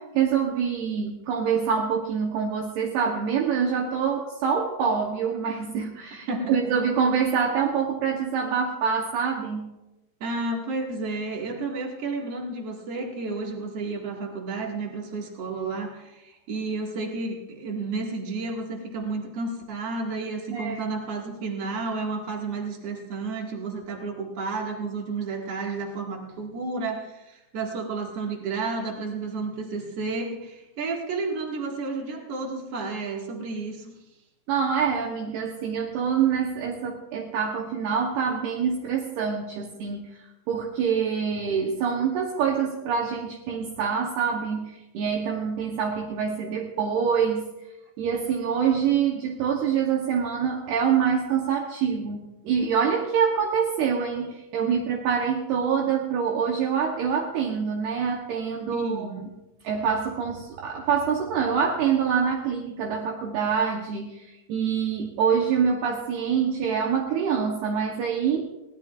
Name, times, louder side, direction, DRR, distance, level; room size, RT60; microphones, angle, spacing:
voice 1, 0.0-9.8 20.5-20.8 34.5-40.1 40.5-47.5 48.0-59.3 59.6-68.5, right 7 dB, 80° right, 0 dB, 2.4 m, -25 dB
voice 2, 6.3-6.8 10.2-34.0 58.7-59.2, right 3 dB, 55° right, 0 dB, 1.7 m, -31 dB
22.5 x 17.5 x 2.5 m, 0.95 s
omnidirectional pair, 5.9 m